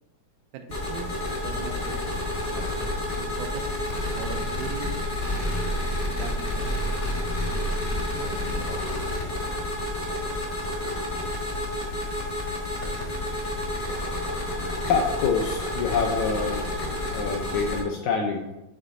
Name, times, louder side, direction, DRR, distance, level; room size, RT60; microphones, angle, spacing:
voice 1, 0.5-2.2 2.5-2.6 3.1-3.7 4.1-4.9 6.1-7.0 8.1-8.8, right 6 dB, 80° right, 4 dB, 1.9 m, -40 dB
sound 1, 0.7-17.8, left 1 dB, 55° left, 0.9 m, -29 dB
voice 2, 14.9-16.7 17.1-18.5, left 5 dB, 85° left, 1 dB, 1.6 m, -26 dB
7.4 x 4.0 x 3.7 m, 0.95 s
omnidirectional pair, 4.0 m